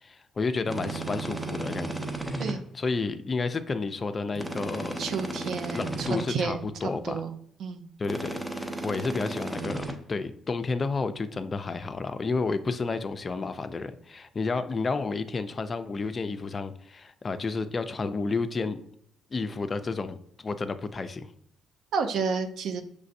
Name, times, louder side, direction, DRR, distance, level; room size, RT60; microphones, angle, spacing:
voice 1, 0.0-5.0 5.7-7.2 8.0-18.8 19.3-21.3, left 4 dB, 35° left, 10 dB, 0.4 m, -31 dB
sound 1, 0.7-2.5 4.3-6.2 8.0-9.9, right 2 dB, 15° right, 0.6 m, -34 dB
voice 2, 5.0-7.3 7.6-7.8 21.9-22.8, right 5 dB, 70° right, 7 dB, 0.4 m, -31 dB
5.4 x 3.3 x 2.6 m, 0.68 s
cardioid pair, 90°, 0 cm